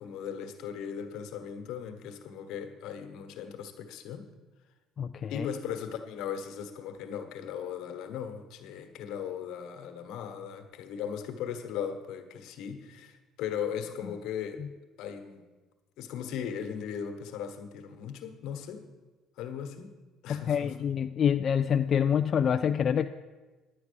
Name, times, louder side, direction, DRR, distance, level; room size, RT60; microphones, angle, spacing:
voice 1, 0.0-4.3 5.3-14.6 15.0-15.5 16.0-18.9 19.4-19.9 20.2-20.8, left 8 dB, 75° left, 6 dB, 1.4 m, -38 dB
voice 2, 5.0-5.5 14.6-14.7 20.3-23.1, left 8 dB, 40° left, 7 dB, 0.4 m, -26 dB
11.0 x 8.7 x 7.0 m, 1.2 s
cardioid pair, 120°, 0 cm